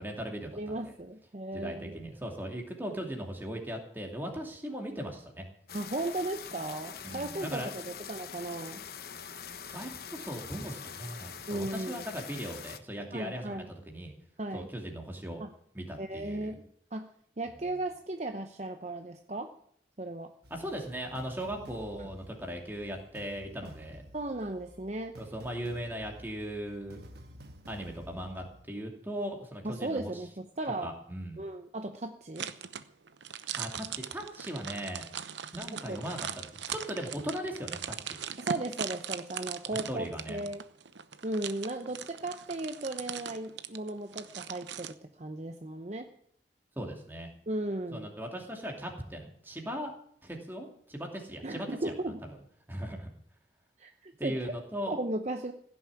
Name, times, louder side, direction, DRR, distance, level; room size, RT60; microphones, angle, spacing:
voice 1, 0.0-0.9 1.5-5.5 7.0-7.8 9.7-14.1 14.5-15.4 15.7-16.6 20.5-24.0 25.2-27.0 27.7-30.1 30.8-31.4 33.6-35.1 35.5-38.2 39.9-40.4 46.8-47.3 47.9-49.9 50.2-51.9 52.7-53.1 54.2-54.9, equal, 10° right, 1 dB, 2.7 m, -38 dB
voice 2, 0.5-2.0 5.7-8.8 11.5-12.1 13.1-13.7 14.4-14.7 15.4-15.5 16.0-16.6 16.9-17.1 17.4-19.5 20.0-20.3 24.1-25.1 29.6-30.9 31.4-32.5 35.7-36.0 38.4-40.6 41.2-46.1 47.5-48.1 51.4-52.2 53.8-54.5 54.9-55.5, right 2 dB, 40° right, 6 dB, 0.8 m, -36 dB
sound 1, 5.7-12.8, left 7 dB, 55° left, 0.9 m, -44 dB
sound 2, 20.4-28.6, equal, 60° right, 1.6 m, -52 dB
sound 3, 32.4-44.9, right 8 dB, 85° right, 0.9 m, -40 dB
16.5 x 7.2 x 9.8 m, 0.64 s
head